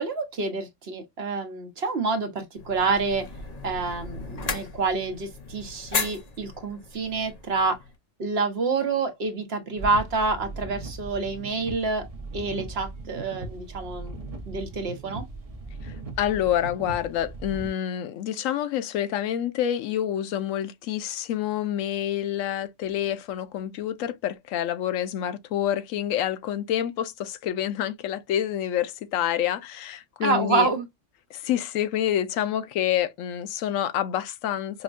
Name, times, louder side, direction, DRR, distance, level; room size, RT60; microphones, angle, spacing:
voice 1, 0.0-3.3 3.6-7.8 8.2-12.0 12.3-14.2 14.5-15.2 30.2-30.8, right 4 dB, 55° right, 1.1 m, -27 dB
sound 1, 2.6-7.9, left 4 dB, 40° left, 0.6 m, -35 dB
sound 2, 9.8-17.7, right 3 dB, 30° right, 0.8 m, -38 dB
voice 2, 15.8-30.7 31.3-34.8, left 11 dB, 90° left, 1.0 m, -27 dB
5.2 x 2.2 x 2.4 m
omnidirectional pair, 1.3 m